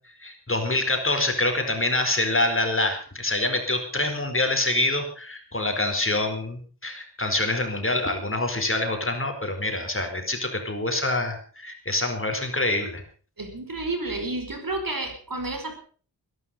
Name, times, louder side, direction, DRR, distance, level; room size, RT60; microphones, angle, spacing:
voice 1, 0.2-13.0, left 2 dB, 30° left, 5 dB, 4.5 m, -26 dB
voice 2, 13.4-15.7, right 2 dB, 55° right, 6 dB, 5.2 m, -30 dB
21.5 x 11.5 x 5.4 m, 0.42 s
wide cardioid pair, 75°, 41 cm